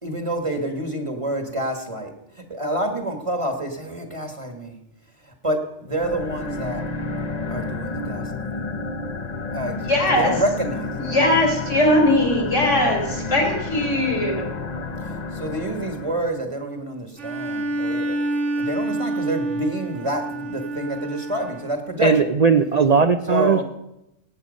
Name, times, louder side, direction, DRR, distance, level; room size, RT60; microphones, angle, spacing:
voice 1, 0.0-4.8 5.2-6.8 7.5-8.5 9.5-9.8 10.1-11.2 15.0-22.2 23.3-23.6, right 1 dB, 25° right, 5 dB, 1.5 m, -28 dB
sound 1, 5.9-16.4, left 3 dB, 35° left, 0.9 m, -30 dB
voice 2, 9.8-10.3 11.0-14.4, left 1 dB, 70° left, 2 dB, 3.6 m, -20 dB
Bowed string instrument, 17.2-21.9, right 2 dB, 65° right, 2.0 m, -27 dB
voice 3, 22.0-23.6, right 5 dB, 50° right, 8 dB, 0.5 m, -18 dB
17.0 x 8.7 x 5.3 m, 0.85 s
omnidirectional pair, 1.3 m